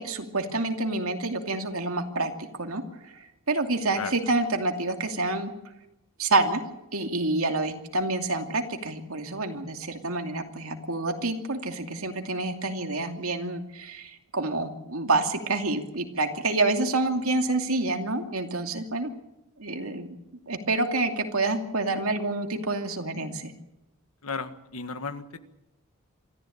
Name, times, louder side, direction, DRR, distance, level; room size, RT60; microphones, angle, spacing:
voice 1, 0.0-5.5 6.2-6.6 6.9-19.1 19.6-20.1 20.5-23.5, right 2 dB, 75° right, 5 dB, 2.7 m, -28 dB
voice 2, 24.2-25.4, left 4 dB, 85° left, 10 dB, 1.7 m, -34 dB
26.0 x 14.0 x 8.7 m, 0.92 s
head